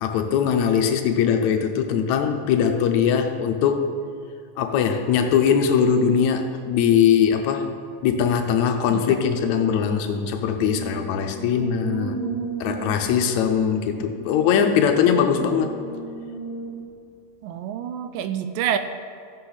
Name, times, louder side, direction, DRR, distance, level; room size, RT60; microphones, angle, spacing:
voice 1, 0.0-3.9 4.6-7.7 8.0-12.2 12.6-15.9, left 7 dB, 75° left, 5 dB, 1.7 m, -21 dB
Brass instrument, 10.5-16.9, left 1 dB, 50° right, 2.4 m, -37 dB
voice 2, 11.6-13.1 17.4-18.8, right 9 dB, 85° right, 9 dB, 2.2 m, -29 dB
15.0 x 8.6 x 4.0 m, 2.3 s
omnidirectional pair, 4.0 m